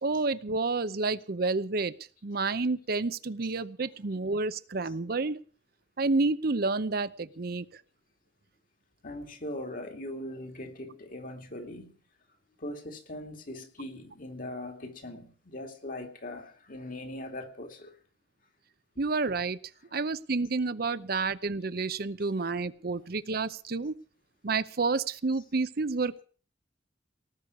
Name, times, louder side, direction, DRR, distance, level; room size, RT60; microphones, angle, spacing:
voice 1, 0.0-1.9 2.2-5.4 6.0-7.7 19.0-19.6 19.9-23.9 24.4-26.2, right 3 dB, 55° right, 0.7 m, -29 dB
voice 2, 9.0-12.0 12.6-18.0 19.9-20.0, left 1 dB, 50° left, 2.6 m, -40 dB
18.5 x 6.4 x 9.6 m
head